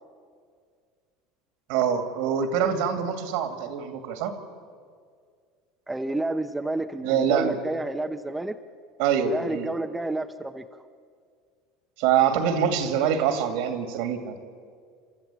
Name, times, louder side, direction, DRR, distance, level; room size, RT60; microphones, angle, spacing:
voice 1, 1.7-4.3 7.0-7.6 9.0-9.7 12.0-14.3, right 8 dB, 70° right, 8 dB, 2.4 m, -25 dB
voice 2, 5.9-8.6 9.2-10.6, right 2 dB, 10° right, 6 dB, 0.9 m, -30 dB
28.0 x 13.5 x 8.6 m, 2.1 s
supercardioid pair, 100°, 0 cm